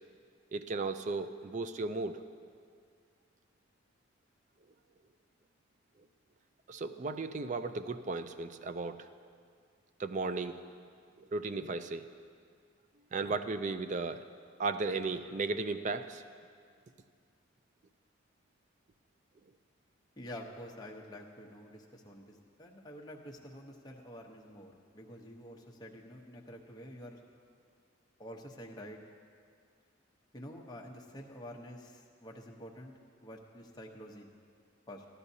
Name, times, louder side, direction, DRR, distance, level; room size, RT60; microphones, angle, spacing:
voice 1, 0.5-2.2 6.7-9.1 10.0-10.6 11.2-12.0 13.1-14.3 14.6-16.2, right 3 dB, 40° right, 11 dB, 0.4 m, -35 dB
voice 2, 20.2-27.2 28.2-29.0 30.3-32.9 33.2-34.3 34.9-35.0, equal, 20° left, 0 dB, 0.9 m, -48 dB
15.5 x 11.5 x 2.8 m, 2.1 s
head